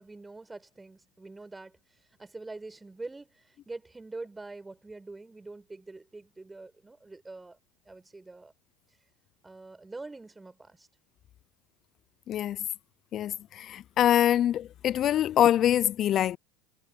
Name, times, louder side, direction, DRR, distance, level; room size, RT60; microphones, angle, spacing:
voice 1, 0.0-1.7 2.2-7.6 7.9-8.5 9.4-10.9, right 3 dB, 10° right, 6.0 m, -44 dB
voice 2, 12.3-12.6 13.1-16.4, left 11 dB, 45° left, 0.3 m, -24 dB
hypercardioid pair, 95°, 0 cm